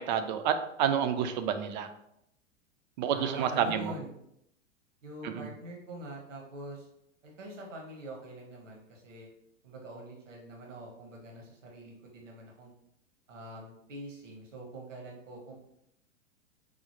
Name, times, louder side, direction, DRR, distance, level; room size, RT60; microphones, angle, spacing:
voice 1, 0.0-1.9 3.0-3.9 5.2-5.5, right 8 dB, 40° right, 8 dB, 0.4 m, -29 dB
voice 2, 3.1-4.1 5.0-6.9 7.2-9.3 9.6-12.7 13.3-15.6, right 1 dB, 80° right, -1 dB, 1.1 m, -44 dB
4.9 x 2.0 x 2.9 m, 0.76 s
figure-of-eight pair, 100°, 37 cm